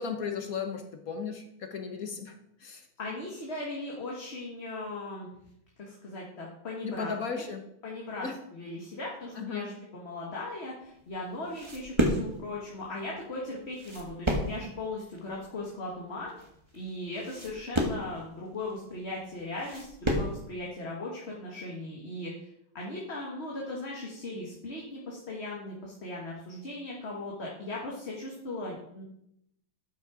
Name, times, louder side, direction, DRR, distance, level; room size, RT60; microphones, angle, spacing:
voice 1, 0.0-2.3 2.6-2.9 6.8-7.7 8.2-8.3 9.4-9.7, left 5 dB, 50° left, 5 dB, 1.3 m, -35 dB
voice 2, 3.0-5.3 5.8-7.4 7.8-8.3 8.5-16.3 16.7-22.5 22.7-29.0, left 2 dB, 30° left, -3 dB, 1.8 m, -38 dB
sound 1, 10.9-20.4, equal, 15° right, 1.3 m, -32 dB
12.0 x 6.2 x 5.0 m, 0.77 s
omnidirectional pair, 2.3 m